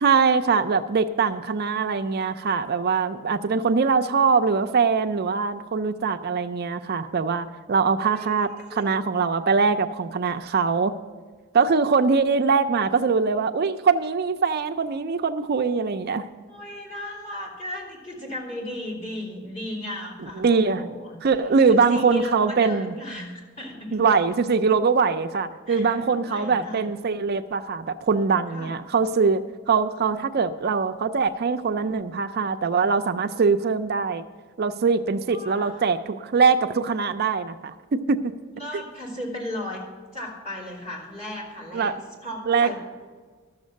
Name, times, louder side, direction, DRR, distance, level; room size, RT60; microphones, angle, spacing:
voice 1, 0.0-10.9 11.5-16.3 20.4-20.8 21.2-22.9 23.9-34.2 34.6-38.3 41.7-42.0 42.5-42.8, right 5 dB, 45° right, 9 dB, 0.4 m, -22 dB
voice 2, 7.9-8.9 16.5-21.1 21.7-24.0 25.7-26.9 28.5-28.7 35.3-35.8 38.6-39.8 40.1-42.8, left 1 dB, 30° left, -5 dB, 3.2 m, -36 dB
12.5 x 7.2 x 6.4 m, 1.5 s
head